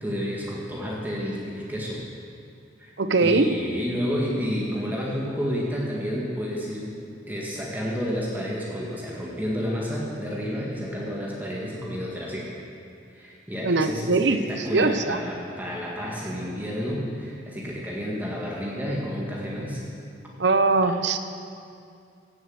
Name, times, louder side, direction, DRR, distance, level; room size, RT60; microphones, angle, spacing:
voice 1, 0.0-2.0 2.8-2.9 3.2-6.9 7.3-12.5 13.1-19.8 20.8-21.0, equal, 10° right, -4 dB, 1.7 m, -30 dB
voice 2, 3.0-3.5 13.6-14.4 14.7-15.2 20.4-21.2, right 3 dB, 65° right, 10 dB, 0.8 m, -21 dB
16.5 x 7.8 x 7.9 m, 2.5 s
head